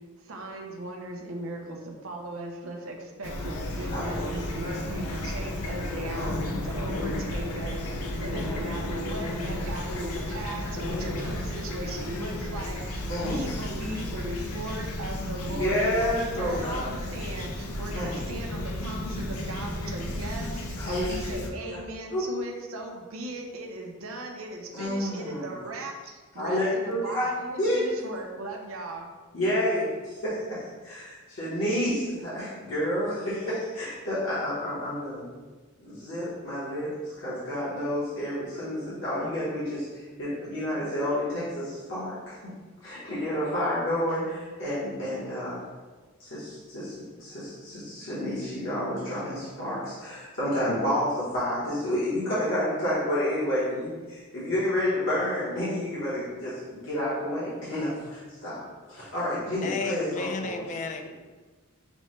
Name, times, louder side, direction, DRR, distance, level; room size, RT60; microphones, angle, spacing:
voice 1, 0.2-29.1, right 2 dB, 65° right, 0.6 m, -38 dB
Fowl / Chirp tweet, 3.2-21.5, left 1 dB, 85° left, 0.5 m, -33 dB
voice 2, 3.9-4.2 4.7-4.8 13.1-13.5 15.5-16.9 17.9-18.1 20.8-21.8 22.1-22.2 24.7-25.5 26.4-27.3 27.6-27.8 29.3-35.3 35.8-42.4 42.8-45.6 46.2-60.6, left 1 dB, 60° left, 1.1 m, -30 dB
voice 3, 59.6-61.1, left 4 dB, 35° left, 0.3 m, -33 dB
6.0 x 2.1 x 3.1 m
head